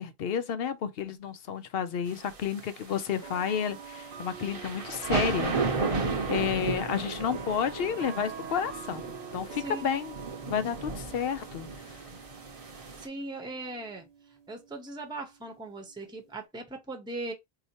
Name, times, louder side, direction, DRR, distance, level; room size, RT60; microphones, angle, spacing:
voice 1, 0.0-9.0 9.3-10.1 10.5-12.0, left 8 dB, 70° left, 0.8 m, -31 dB
sound 1, 1.0-1.1 2.2-2.3 3.2-16.4, right 7 dB, 85° right, 1.2 m, -45 dB
sound 2, 2.1-13.1, right 3 dB, 40° right, 0.7 m, -34 dB
voice 2, 13.0-14.0 14.5-17.3, right 2 dB, 5° right, 0.7 m, -39 dB
4.2 x 2.8 x 2.8 m
omnidirectional pair, 1.0 m